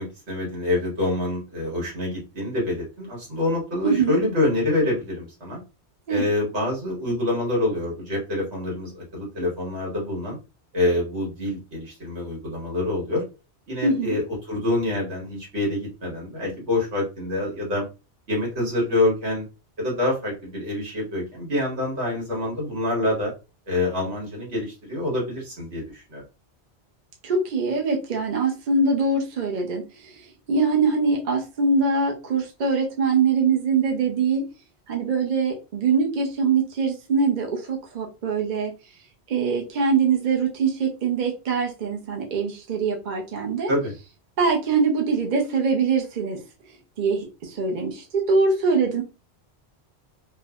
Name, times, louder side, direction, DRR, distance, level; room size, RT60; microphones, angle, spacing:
voice 1, 0.0-5.6 6.1-10.4 10.7-13.2 13.7-14.2 14.5-17.8 18.3-19.4 19.8-23.3 23.7-26.2 43.7-43.9, left 2 dB, 80° right, -3 dB, 1.7 m, -26 dB
voice 2, 3.8-4.1 6.1-6.3 13.8-14.2 27.2-30.1 30.5-34.4 34.9-38.7 39.3-43.7 44.4-46.4 47.0-49.0, right 4 dB, 50° right, 0 dB, 0.7 m, -23 dB
3.2 x 2.1 x 2.3 m, 0.30 s
omnidirectional pair, 1.1 m